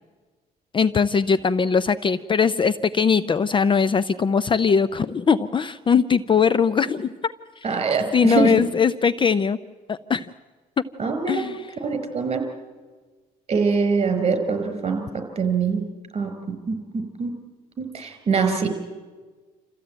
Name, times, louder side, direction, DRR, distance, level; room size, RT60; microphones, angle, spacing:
voice 1, 0.7-7.3 8.1-9.6 9.9-10.3 11.3-11.7, left 6 dB, 30° left, 15 dB, 0.6 m, -20 dB
voice 2, 7.6-8.5 11.0-11.4 11.8-12.4 13.5-15.0 15.4-15.8 16.1-17.3 17.8-18.7, right 5 dB, 35° right, 7 dB, 4.9 m, -23 dB
27.0 x 15.0 x 8.9 m, 1.4 s
cardioid pair, 110°, 17 cm